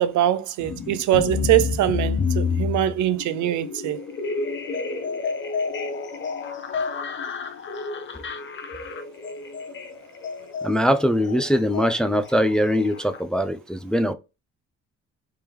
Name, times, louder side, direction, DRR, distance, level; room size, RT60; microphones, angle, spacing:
voice 1, 0.0-4.0, right 12 dB, 75° right, 0.5 m, -22 dB
sound 1, 0.6-13.2, left 5 dB, 40° left, 0.7 m, -30 dB
voice 2, 10.6-14.1, equal, 5° left, 0.4 m, -22 dB
3.6 x 2.9 x 3.2 m
cardioid pair, 90°, 30 cm